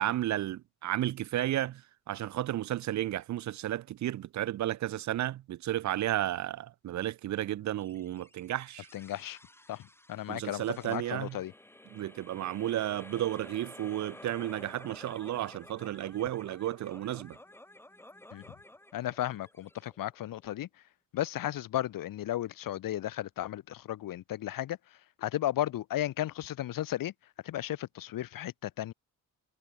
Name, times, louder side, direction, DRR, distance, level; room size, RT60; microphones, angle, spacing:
voice 1, 0.0-1.8 2.1-8.9 10.3-11.4 11.9-17.4, right 13 dB, 55° right, 0.5 m, -33 dB
sound 1, 7.8-20.4, left 1 dB, 5° left, 2.1 m, -52 dB
voice 2, 8.9-9.4 9.7-9.8 10.1-11.5 18.3-18.4 18.9-20.7 21.1-24.8 25.2-27.1 27.4-28.9, left 13 dB, 75° left, 1.1 m, -34 dB
cardioid pair, 95°, 34 cm